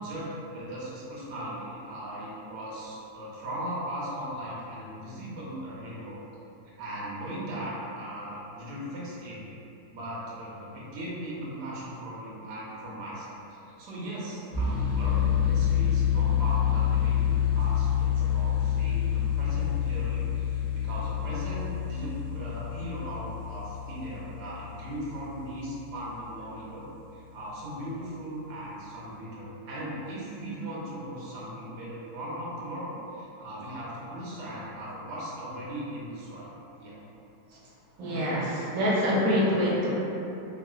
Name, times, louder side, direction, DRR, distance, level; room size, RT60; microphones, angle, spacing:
voice 1, 0.0-6.2 6.8-9.5 9.9-26.9 27.1-37.0, right 1 dB, 85° right, -6 dB, 1.3 m, -38 dB
sound 1, 14.5-25.4, left 9 dB, 60° left, 0.9 m, -27 dB
voice 2, 38.0-40.0, equal, 60° right, -6 dB, 1.0 m, -25 dB
3.7 x 2.4 x 2.3 m, 2.8 s
omnidirectional pair, 1.8 m